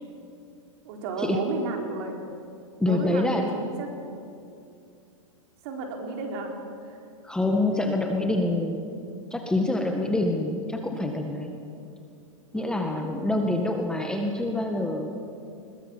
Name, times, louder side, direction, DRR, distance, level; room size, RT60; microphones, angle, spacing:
voice 1, 0.8-2.2 2.8-3.9 5.6-6.6 6.8-7.0 12.5-12.9, right 4 dB, 50° right, 2 dB, 4.5 m, -33 dB
voice 2, 2.8-3.4 7.2-8.8 9.3-11.5 12.5-15.1, left 2 dB, 5° left, 3 dB, 1.9 m, -26 dB
22.0 x 20.5 x 7.5 m, 2.5 s
hypercardioid pair, 130°, 17 cm